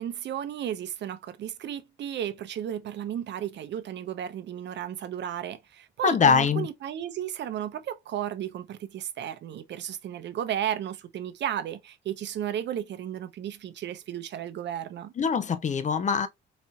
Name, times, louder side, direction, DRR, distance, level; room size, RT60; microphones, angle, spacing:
voice 1, 0.0-15.1, right 10 dB, 65° right, 0.6 m, -34 dB
voice 2, 6.0-6.7 15.2-16.3, left 6 dB, 40° left, 0.6 m, -23 dB
4.1 x 2.7 x 2.2 m
cardioid pair, 90°, 20 cm